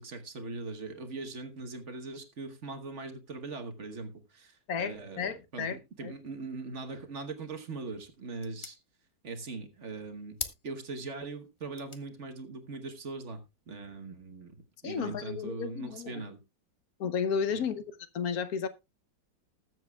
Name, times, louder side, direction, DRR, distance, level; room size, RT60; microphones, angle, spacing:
voice 1, 0.0-8.8 9.2-10.4 10.6-16.4 17.5-17.7, right 3 dB, 45° right, 1.3 m, -41 dB
voice 2, 4.7-5.8 6.0-6.1 14.8-16.2 17.0-17.8 18.1-18.7, left 6 dB, 60° left, 1.2 m, -33 dB
sound 1, 7.4-14.2, left 4 dB, 30° left, 0.5 m, -48 dB
20.0 x 7.4 x 2.3 m
omnidirectional pair, 1.9 m